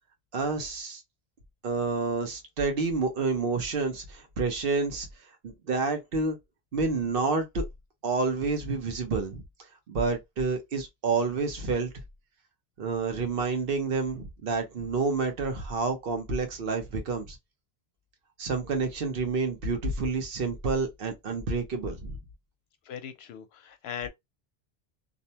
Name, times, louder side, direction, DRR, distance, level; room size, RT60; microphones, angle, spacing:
voice 1, 0.3-1.0 1.6-5.1 5.4-6.4 6.7-7.6 8.0-9.4 9.9-11.9 12.8-17.4 18.4-22.2, right 4 dB, 60° right, 0.9 m, -29 dB
voice 2, 22.9-24.1, left 8 dB, 80° left, 0.8 m, -39 dB
2.6 x 2.1 x 2.7 m
omnidirectional pair, 1.1 m